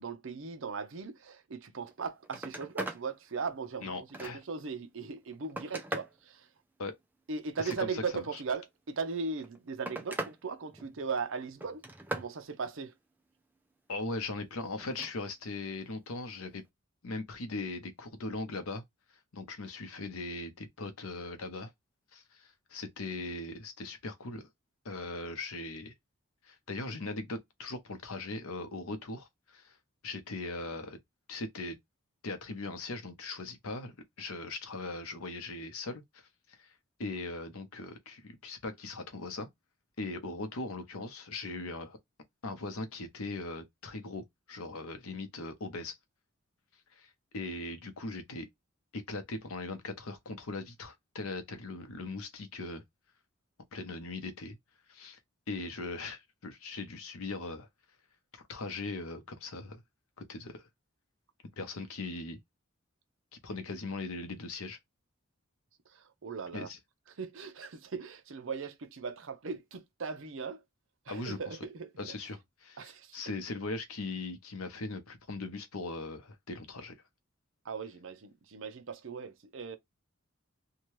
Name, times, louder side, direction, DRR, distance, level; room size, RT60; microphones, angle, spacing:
voice 1, 0.0-6.5 7.3-11.8 12.1-12.9 65.9-66.7 67.2-70.6 71.1-72.1 72.8-73.2 77.6-79.8, right 5 dB, 65° right, 0.6 m, -38 dB
Telephone, 1.8-1.9 2.2-3.0 3.5-4.6 5.2-6.2 7.4-8.2 9.2-10.4 10.7-11.2 11.6-12.3 14.8-15.1 16.5-16.7, right 2 dB, 10° right, 0.3 m, -40 dB
voice 2, 3.8-4.4 6.8-7.0 7.6-8.4 13.9-16.6 17.0-18.8 19.3-21.7 22.1-24.5 24.8-25.9 26.4-29.8 30.0-31.0 31.3-31.8 32.2-36.7 37.0-39.5 40.0-42.0 42.4-46.0 46.9-48.5 48.9-52.8 53.7-54.6 54.9-55.2 55.5-57.7 58.3-59.8 60.2-60.7 61.6-62.4 63.4-64.8 66.5-66.8 71.1-71.6 72.0-77.0, left 3 dB, 85° left, 0.7 m, -39 dB
2.8 x 2.2 x 3.0 m
head